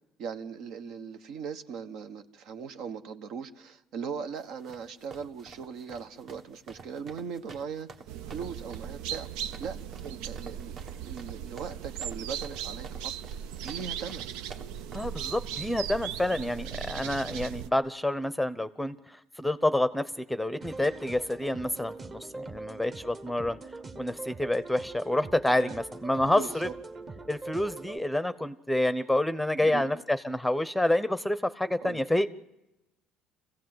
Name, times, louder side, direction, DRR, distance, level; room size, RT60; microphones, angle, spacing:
voice 1, 0.2-7.9 8.3-9.3 9.6-13.1 13.6-14.2 25.6-25.7 26.2-26.7 29.6-29.9 31.8-32.0, right 6 dB, 65° right, 9 dB, 1.3 m, -39 dB
sound 1, 4.4-15.0, right 4 dB, 45° right, 1.6 m, -49 dB
sound 2, 8.1-17.7, right 9 dB, 85° right, 0.7 m, -38 dB
voice 2, 14.9-23.6 24.0-26.7 27.3-32.3, left 1 dB, ahead, 13 dB, 0.8 m, -28 dB
sound 3, 20.6-28.0, right 3 dB, 30° right, 1.4 m, -43 dB
26.5 x 16.0 x 7.9 m, 0.98 s
cardioid pair, 125°, 0 cm